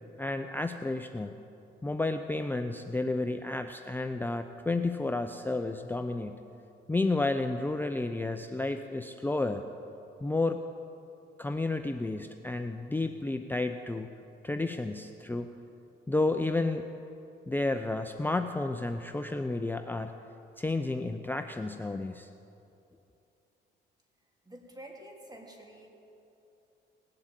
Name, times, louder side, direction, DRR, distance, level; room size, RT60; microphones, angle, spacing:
voice 1, 0.2-1.4 1.8-6.4 6.9-9.6 10.2-10.6 11.4-14.1 14.4-15.5 16.1-16.9 17.5-20.1 20.6-22.3, left 2 dB, 10° left, 7 dB, 0.5 m, -31 dB
voice 2, 24.4-25.9, right 1 dB, 20° right, 0 dB, 3.0 m, -48 dB
18.5 x 7.8 x 9.0 m, 2.8 s
cardioid pair, 90°, 20 cm